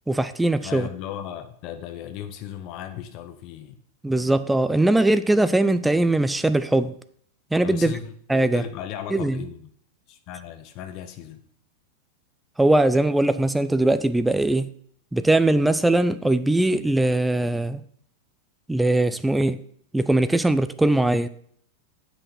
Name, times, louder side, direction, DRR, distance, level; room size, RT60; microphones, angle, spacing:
voice 1, 0.1-0.9 4.0-6.9 7.5-7.9 8.3-8.6 9.1-9.4 12.6-14.7 15.1-17.8 18.7-19.6 19.9-21.3, right 2 dB, 5° right, 12 dB, 0.4 m, -20 dB
voice 2, 0.6-3.8 7.6-8.1 8.5-9.7 10.1-11.4, left 10 dB, 40° left, 8 dB, 0.8 m, -36 dB
7.8 x 6.2 x 5.8 m, 0.62 s
figure-of-eight pair, 90°, 0 cm